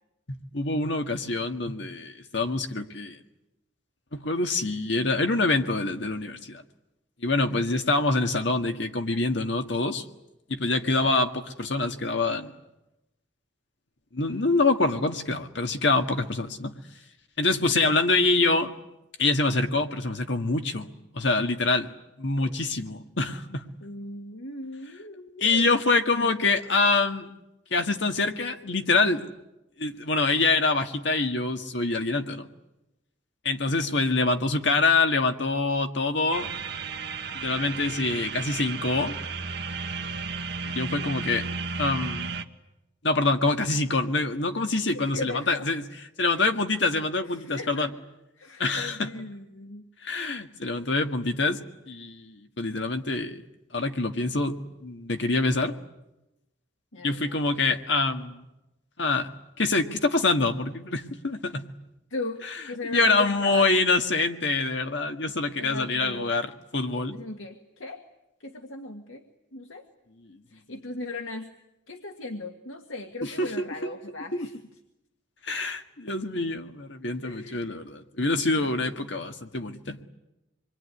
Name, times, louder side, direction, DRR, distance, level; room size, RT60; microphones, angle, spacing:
voice 1, 0.3-3.2 4.1-6.6 7.2-10.1 10.5-12.5 14.1-16.8 17.4-18.7 19.2-21.9 22.2-23.7 25.4-27.3 27.7-29.2 29.8-32.5 33.4-36.5 37.3-39.1 40.7-41.4 41.8-42.4 43.0-45.8 46.2-47.9 48.6-49.1 50.0-53.4 53.7-55.8 57.0-58.5 59.0-59.3 59.6-61.7 62.8-66.5 66.7-67.2 70.2-70.4 73.2-73.9 74.3-74.5 75.4-80.0, left 3 dB, 65° left, 1.8 m, -25 dB
voice 2, 7.5-7.8 22.4-22.7 23.8-25.8 26.1-26.3 33.7-33.9 41.0-41.5 44.9-45.7 46.3-46.4 47.2-47.9 48.4-49.9 56.9-57.8 62.1-63.7 65.6-66.3 67.1-68.0 68.4-69.2 69.5-69.9 70.5-71.5 71.9-74.6 77.2-77.8, left 2 dB, 85° left, 1.8 m, -38 dB
sound 1, 36.3-42.4, right 4 dB, 55° right, 1.4 m, -34 dB
26.5 x 22.5 x 9.8 m
head